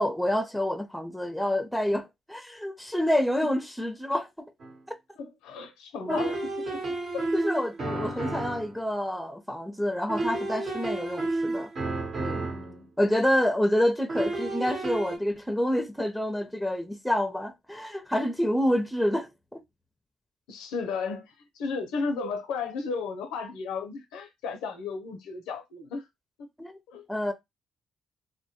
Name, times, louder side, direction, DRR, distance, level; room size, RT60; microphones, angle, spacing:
voice 1, 0.0-4.3 6.1-6.2 7.3-11.7 12.2-12.5 13.0-19.6 26.6-26.8 27.1-27.3, left 1 dB, 5° left, 0.6 m, -28 dB
sound 1, 4.6-4.7 6.1-8.8 10.1-12.8 14.1-15.2, right 2 dB, 55° right, 0.9 m, -31 dB
voice 2, 5.2-6.4 6.7-6.8 7.1-7.3 8.0-8.3 12.5-12.9 20.5-26.1 26.4-26.5 26.9-27.1, left 4 dB, 90° left, 0.5 m, -34 dB
2.1 x 2.1 x 2.8 m
supercardioid pair, 65°, 0 cm